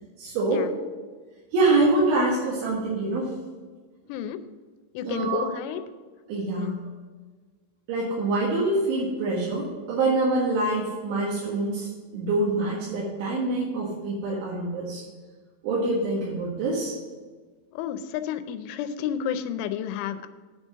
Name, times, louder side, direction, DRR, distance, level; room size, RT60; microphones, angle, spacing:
voice 1, 0.2-0.7 1.5-3.3 5.0-5.5 6.3-6.8 7.9-15.0 15.6-17.0, right 2 dB, 80° right, -6 dB, 4.1 m, -25 dB
voice 2, 4.1-4.4 4.9-5.8 6.6-6.8 17.7-20.3, left 9 dB, 85° left, 10 dB, 3.1 m, -31 dB
10.0 x 5.4 x 6.2 m, 1.4 s
omnidirectional pair, 5.5 m